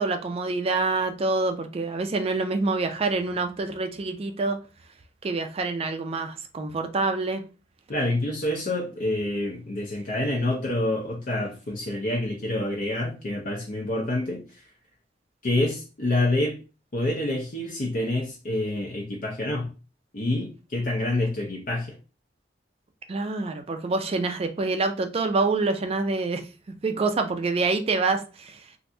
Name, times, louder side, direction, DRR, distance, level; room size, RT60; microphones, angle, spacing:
voice 1, 0.0-4.6 5.2-7.4 23.1-26.4 26.8-28.6, right 3 dB, 35° right, 0.4 m, -26 dB
voice 2, 7.9-14.4 15.4-16.6 16.9-19.7 20.1-21.9, left 1 dB, 50° left, 0.6 m, -27 dB
3.2 x 2.5 x 2.6 m
head